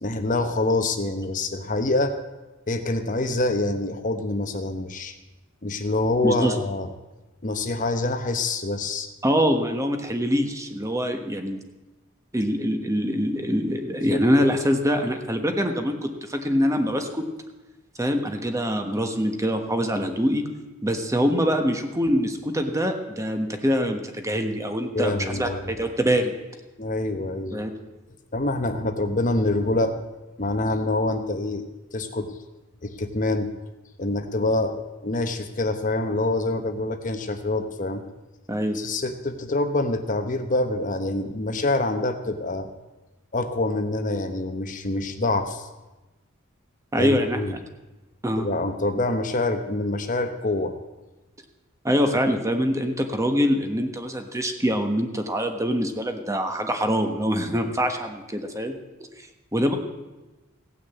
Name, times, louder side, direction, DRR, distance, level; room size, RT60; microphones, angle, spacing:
voice 1, 0.0-2.1 2.7-5.1 5.6-6.9 7.4-9.1 14.1-14.2 24.9-25.7 26.8-27.6 28.3-30.0 30.4-31.7 31.9-32.3 32.8-33.5 34.0-38.0 38.7-42.7 43.3-45.7 47.0-47.6 48.4-50.7, left 2 dB, 40° left, 7 dB, 0.9 m, -26 dB
voice 2, 6.2-6.5 9.2-11.6 12.3-17.2 18.0-20.4 20.8-26.3 27.5-27.7 38.5-38.8 46.9-47.6 48.2-48.5 51.8-58.8 59.5-59.8, equal, 15° right, 5 dB, 1.2 m, -24 dB
16.5 x 6.3 x 8.3 m, 1.1 s
head